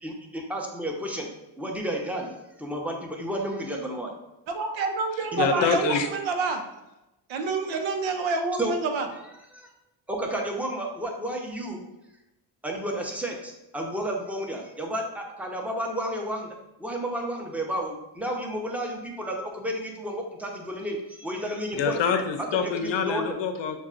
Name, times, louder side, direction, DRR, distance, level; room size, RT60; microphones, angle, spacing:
voice 1, 0.0-1.3 1.6-2.3 2.6-4.1 5.3-5.8 8.6-8.7 9.5-9.7 10.1-11.8 12.6-16.5 16.8-22.0 22.5-23.4, right 1 dB, 5° right, 1 dB, 0.8 m, -31 dB
voice 2, 4.5-6.6 7.3-9.1, right 4 dB, 70° right, 5 dB, 0.8 m, -27 dB
voice 3, 5.4-6.1 21.7-23.8, left 7 dB, 65° left, 7 dB, 0.7 m, -26 dB
6.9 x 2.4 x 2.5 m, 0.93 s
cardioid pair, 75°, 48 cm